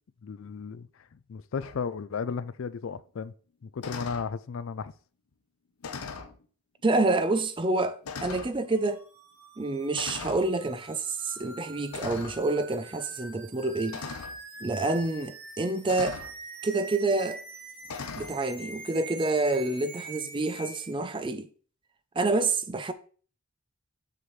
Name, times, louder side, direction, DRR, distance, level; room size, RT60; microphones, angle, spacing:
voice 1, 0.2-0.9 1.1-3.3 3.6-4.9, left 5 dB, 60° left, 0.4 m, -34 dB
sound 1, 1.6-1.8 3.8-4.3 5.8-6.4 7.2-7.3 8.0-8.6 10.0-10.5 11.9-12.4 13.9-14.4 15.9-16.3 17.9-18.3, left 5 dB, 85° left, 0.7 m, -38 dB
voice 2, 6.8-9.0 9.6-14.0 14.6-16.2 16.6-17.4 18.2-21.5 22.2-22.9, right 2 dB, 20° right, 0.4 m, -28 dB
sound 2, 8.7-20.9, right 3 dB, 80° right, 2.4 m, -45 dB
6.9 x 6.5 x 3.2 m
head